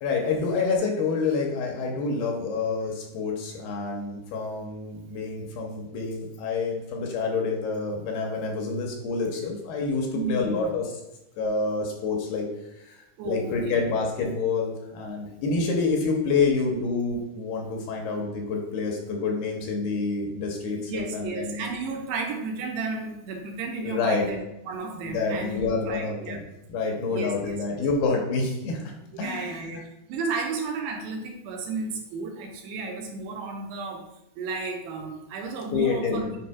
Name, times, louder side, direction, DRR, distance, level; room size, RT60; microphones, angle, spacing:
voice 1, 0.0-10.9 11.4-21.7 23.8-24.4 25.1-26.4 26.7-29.8 35.7-36.2, left 4 dB, 75° left, 1 dB, 2.6 m, -28 dB
voice 2, 10.1-10.7 13.2-13.6 20.9-26.4 27.1-27.8 29.1-34.0 34.4-36.4, right 3 dB, 80° right, 1 dB, 2.9 m, -33 dB
8.6 x 4.8 x 2.3 m, 0.93 s
omnidirectional pair, 4.8 m